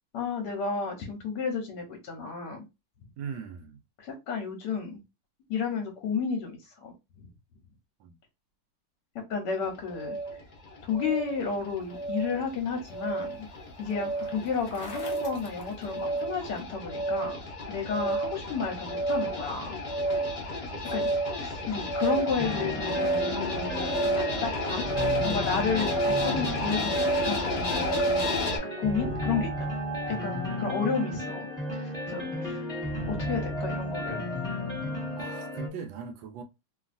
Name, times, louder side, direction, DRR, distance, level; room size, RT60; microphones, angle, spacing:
voice 1, 0.1-2.6 4.0-5.0 5.5-6.9 7.2-7.3 9.3-10.2 10.8-13.5 13.8-17.4 17.7-19.8 20.9-21.1 21.4-24.9 25.2-29.7 30.1-31.5 31.7-32.7 33.0-34.2, left 5 dB, 65° left, 1.2 m, -32 dB
voice 2, 3.2-3.8 8.0-8.2 20.7-20.9 32.1-32.2 35.2-36.4, right 6 dB, 75° right, 1.2 m, -40 dB
sound 1, 9.6-28.6, equal, 40° left, 0.6 m, -31 dB
Bicycle, 12.2-16.6, left 3 dB, 85° left, 0.5 m, -49 dB
sound 2, 22.4-35.7, left 1 dB, 5° left, 0.7 m, -33 dB
3.0 x 2.6 x 2.5 m
omnidirectional pair, 2.3 m